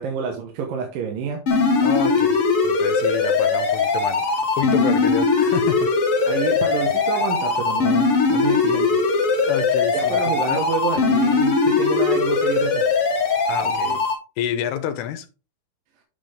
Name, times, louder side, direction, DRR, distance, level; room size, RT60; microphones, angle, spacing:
voice 1, 0.0-1.4 4.9-5.1 6.3-9.0 9.9-12.9 13.6-14.0, right 6 dB, 65° right, 2.5 m, -29 dB
sound 1, 1.5-14.1, left 4 dB, 50° left, 1.8 m, -20 dB
voice 2, 1.8-4.3 4.6-5.9 9.5-10.6 13.5-14.0 14.4-15.3, left 10 dB, 80° left, 2.7 m, -29 dB
9.0 x 6.0 x 3.5 m
omnidirectional pair, 4.9 m